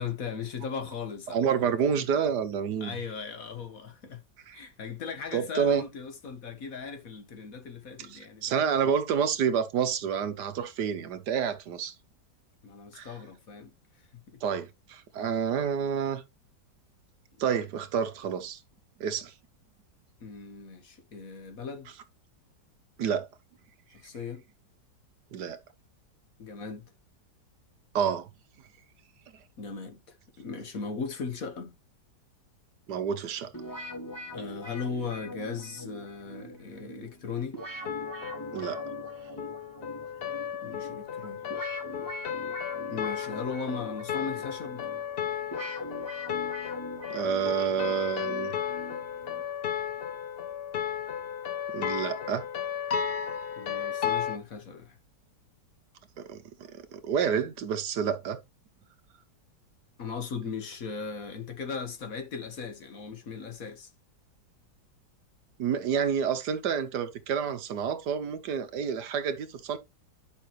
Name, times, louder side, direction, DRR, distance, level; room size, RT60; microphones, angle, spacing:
voice 1, 0.0-1.5 2.0-2.1 2.8-4.2 4.5-8.6 12.6-14.4 15.2-15.3 20.2-21.9 23.9-24.4 26.4-26.9 29.6-31.8 34.3-37.6 40.6-41.5 42.9-44.9 53.6-55.0 60.0-63.9, left 5 dB, 55° left, 1.6 m, -38 dB
voice 2, 1.3-3.0 4.5-4.6 5.3-5.8 8.1-11.9 12.9-13.1 14.4-16.2 17.4-18.6 19.0-19.3 23.0-23.3 25.3-25.6 27.9-28.3 32.9-33.5 38.5-38.8 47.1-48.5 51.7-52.5 56.2-56.4 56.7-58.4 65.6-69.8, right 7 dB, 70° right, 1.5 m, -29 dB
sound 1, 33.5-49.5, equal, 10° left, 2.1 m, -43 dB
sound 2, 37.9-54.4, left 8 dB, 75° left, 0.5 m, -34 dB
10.5 x 5.6 x 3.1 m
omnidirectional pair, 1.9 m